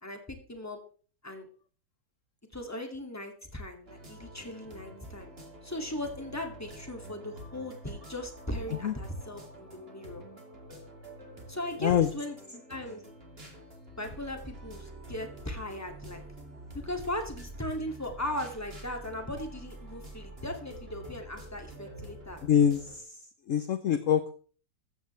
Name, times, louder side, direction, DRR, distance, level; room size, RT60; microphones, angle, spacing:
voice 1, 0.0-0.8 1.2-1.5 2.5-5.3 5.6-10.2 11.5-13.1 14.0-16.2 16.7-22.4, left 1 dB, 10° left, 4 dB, 2.3 m, -38 dB
sound 1, 3.9-23.0, right 1 dB, 35° right, 2.8 m, -47 dB
voice 2, 22.4-23.1 23.5-24.3, left 9 dB, 55° left, 11 dB, 1.0 m, -25 dB
15.0 x 13.5 x 3.3 m, 0.40 s
omnidirectional pair, 1.8 m